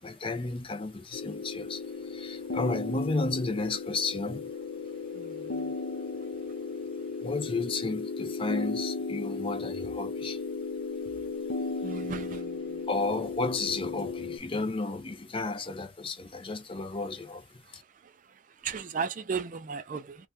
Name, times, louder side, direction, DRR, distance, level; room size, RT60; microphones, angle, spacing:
voice 1, 0.0-4.5 7.2-10.4 12.9-17.5 17.7-17.8, left 3 dB, 30° left, 0.5 m, -32 dB
sound 1, 1.1-14.4, left 4 dB, 70° left, 0.7 m, -35 dB
voice 2, 11.8-12.6 18.6-20.2, right 5 dB, 40° right, 0.4 m, -34 dB
3.2 x 2.2 x 2.6 m
head